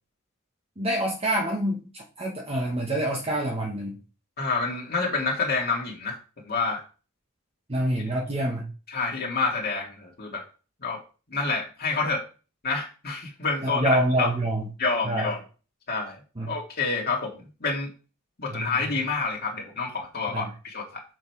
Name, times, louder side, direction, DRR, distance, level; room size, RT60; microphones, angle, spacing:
voice 1, 0.8-4.0 7.7-8.6 13.6-14.7 15.0-15.3 16.4-16.5 18.5-18.7 20.3-20.5, right 1 dB, 30° right, 0 dB, 1.3 m, -26 dB
voice 2, 4.4-6.2 6.5-6.8 8.9-10.4 10.8-11.0 11.3-12.2 12.6-14.3 14.8-15.4 15.9-16.2 16.5-17.3 17.6-17.9 18.4-21.0, left 4 dB, 50° left, -1 dB, 2.2 m, -28 dB
6.6 x 6.3 x 4.7 m, 0.35 s
head